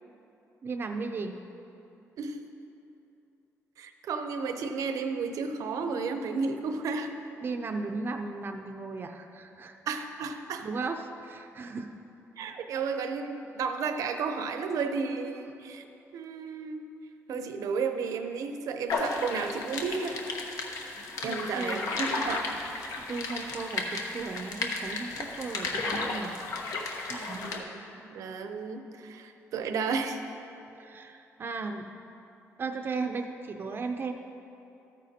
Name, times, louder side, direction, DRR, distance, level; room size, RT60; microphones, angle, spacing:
voice 1, 0.6-1.4 7.4-9.8 10.6-11.9 21.2-21.8 23.1-26.3 27.1-27.4 30.8-31.9 32.6-34.1, right 4 dB, 40° right, 4 dB, 0.4 m, -36 dB
voice 2, 3.8-7.1 9.9-10.7 12.4-15.9 16.1-16.8 17.3-20.2 21.2-22.4 27.3-30.2, right 5 dB, 80° right, 7 dB, 0.7 m, -33 dB
sound 1, 18.9-27.6, left 3 dB, 85° left, 1.0 m, -34 dB
13.0 x 9.1 x 2.8 m, 2.9 s
cardioid pair, 125°, 6 cm